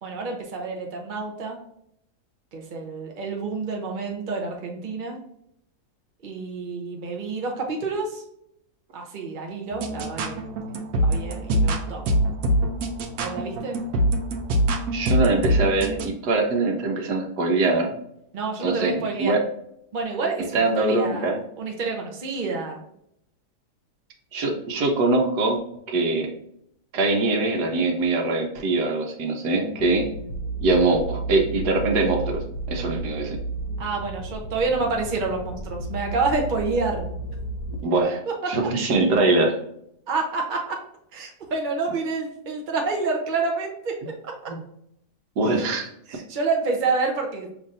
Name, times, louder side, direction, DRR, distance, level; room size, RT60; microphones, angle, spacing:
voice 1, 0.0-1.6 2.5-5.2 6.2-8.2 8.9-10.4 11.0-12.0 13.2-13.8 18.3-19.4 19.9-22.8 33.8-37.1 38.3-38.5 40.1-40.8 41.1-44.5 45.4-45.7 46.1-47.5, right 4 dB, 45° right, 1 dB, 0.6 m, -28 dB
sound 1, 9.7-16.1, right 1 dB, 70° right, 1.1 m, -24 dB
voice 2, 14.9-17.9 18.6-19.4 20.5-21.4 24.3-25.6 25.9-26.3 26.9-30.1 30.6-33.4 37.8-38.2 38.5-39.5 45.4-45.9, right 2 dB, 90° right, 3 dB, 1.4 m, -22 dB
sound 2, 29.8-37.8, right 2 dB, 65° left, 1.1 m, -33 dB
5.4 x 3.3 x 2.5 m, 0.74 s
omnidirectional pair, 1.7 m